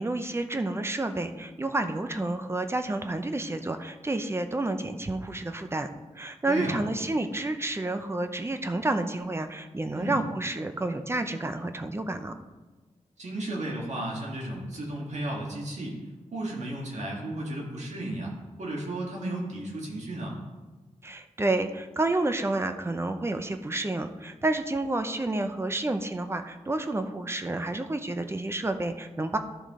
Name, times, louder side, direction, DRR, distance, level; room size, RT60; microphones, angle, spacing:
voice 1, 0.0-5.9 6.2-12.3 21.0-29.4, right 2 dB, 20° right, 8 dB, 0.6 m, -30 dB
voice 2, 6.5-6.8 9.9-10.2 13.2-16.0 16.3-18.3 18.6-20.4, right 1 dB, 65° right, -2 dB, 1.9 m, -34 dB
13.0 x 5.0 x 3.7 m, 1.2 s
wide cardioid pair, 125°, 13 cm